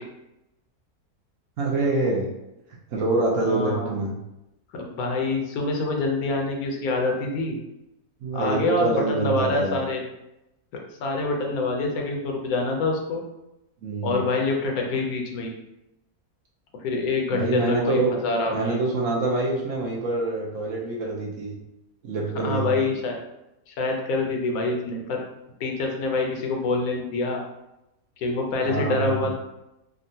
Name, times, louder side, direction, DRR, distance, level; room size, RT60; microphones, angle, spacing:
voice 1, 1.6-2.3 2.9-4.2 8.2-9.9 13.8-14.2 17.3-18.1 18.5-21.5 22.0-22.7 28.6-29.3, right 2 dB, 65° right, -2 dB, 0.9 m, -25 dB
voice 2, 3.4-3.9 4.7-7.6 8.3-10.0 11.0-13.2 14.0-15.5 16.8-18.8 22.4-23.2 23.7-25.2 25.6-27.4 28.2-29.3, left 3 dB, 75° left, 1 dB, 1.1 m, -26 dB
3.6 x 2.2 x 2.6 m, 0.91 s
omnidirectional pair, 1.6 m